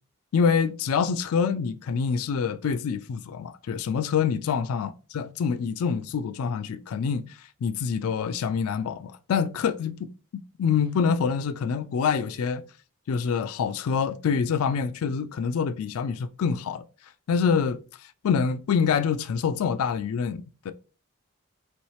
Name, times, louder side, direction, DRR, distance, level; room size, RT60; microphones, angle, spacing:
voice 1, 0.3-10.0 10.6-12.6 13.1-16.8 17.3-20.7, left 6 dB, 90° left, 0.3 m, -26 dB
4.2 x 3.0 x 3.2 m
head